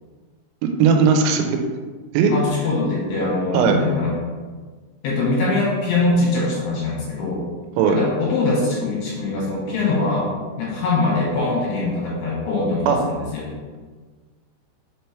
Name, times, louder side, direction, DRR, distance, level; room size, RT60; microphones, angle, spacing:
voice 1, 0.8-1.6 2.1-2.3 3.5-3.8 7.8-8.0 12.9-13.0, right 6 dB, 90° right, 4 dB, 3.2 m, -17 dB
voice 2, 2.3-4.1 5.0-7.4 7.9-10.3 10.6-13.5, left 3 dB, 65° left, -6 dB, 3.1 m, -22 dB
6.9 x 3.3 x 4.4 m, 1.4 s
omnidirectional pair, 5.5 m